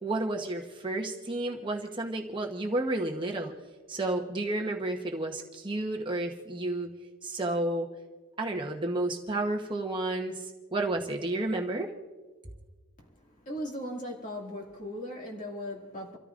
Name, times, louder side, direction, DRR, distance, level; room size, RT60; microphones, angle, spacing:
voice 1, 0.0-3.5 3.9-6.9 7.2-7.9 8.4-11.9, right 2 dB, 20° right, 1.0 m, -31 dB
voice 2, 13.0-16.2, equal, 35° left, 2.2 m, -38 dB
29.0 x 14.0 x 2.5 m
head